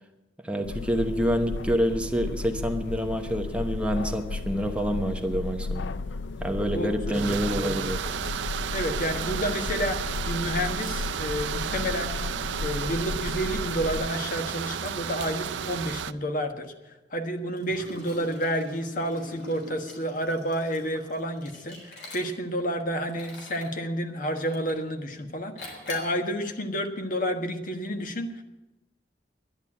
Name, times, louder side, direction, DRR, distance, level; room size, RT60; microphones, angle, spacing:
voice 1, 0.4-5.9 6.4-8.0, equal, 5° right, 4 dB, 1.0 m, -27 dB
sound 1, 0.6-14.1, left 3 dB, 90° left, 0.5 m, -34 dB
voice 2, 6.7-7.8 8.7-12.3 12.6-16.7 17.1-28.4, equal, 50° left, 5 dB, 1.4 m, -30 dB
sound 2, 7.1-16.1, right 8 dB, 90° right, 0.5 m, -33 dB
Liquid, 17.6-22.6 23.1-23.8 24.4-24.9 25.6-26.2, left 1 dB, 70° left, 3.8 m, -44 dB
11.5 x 10.5 x 8.6 m, 1.0 s
head